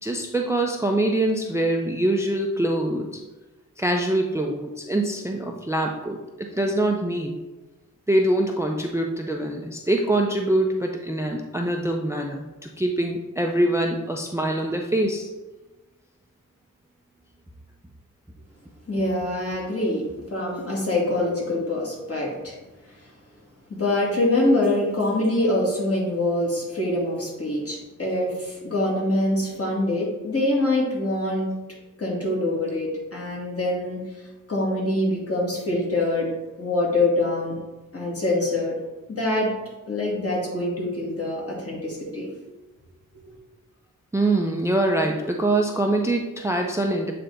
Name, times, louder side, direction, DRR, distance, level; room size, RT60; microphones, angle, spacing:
voice 1, 0.0-3.1 3.8-6.2 6.5-7.4 8.1-15.3 44.1-47.1, right 1 dB, 10° right, 2 dB, 0.5 m, -24 dB
voice 2, 18.9-20.0 20.3-22.6 23.7-31.5 32.0-34.0 34.5-36.3 36.6-37.5 37.9-38.7 39.1-39.5 39.9-42.3, left 1 dB, 45° left, -4 dB, 2.2 m, -24 dB
8.0 x 3.4 x 3.9 m, 1.1 s
wide cardioid pair, 85°, 33 cm